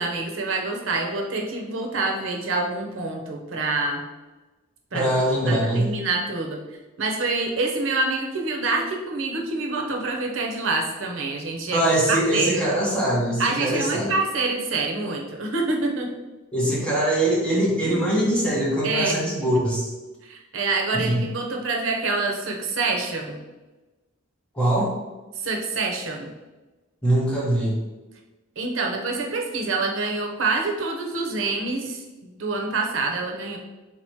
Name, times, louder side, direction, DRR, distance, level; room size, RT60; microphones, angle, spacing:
voice 1, 0.0-4.0 4.9-5.0 5.4-6.6 7.0-12.6 13.4-16.1 18.8-19.2 20.2-23.4 25.4-26.3 28.6-32.0 32.4-33.6, right 3 dB, 75° right, 1 dB, 0.7 m, -26 dB
voice 2, 4.9-5.9 11.7-14.1 16.5-19.9 20.9-21.2 24.5-24.9 27.0-27.8, right 1 dB, 5° left, -5 dB, 1.1 m, -22 dB
3.8 x 2.9 x 4.6 m, 1.1 s
head